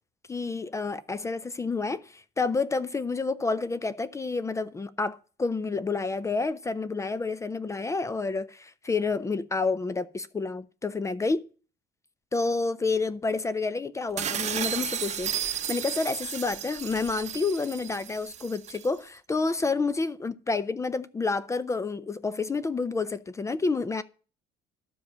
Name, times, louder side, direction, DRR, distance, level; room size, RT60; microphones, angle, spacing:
voice 1, 0.3-11.5 12.3-24.0, left 4 dB, 15° left, 0.4 m, -29 dB
sound 1, 14.2-18.9, right 9 dB, 40° right, 0.9 m, -33 dB
12.0 x 5.0 x 6.1 m
cardioid pair, 135°, 18 cm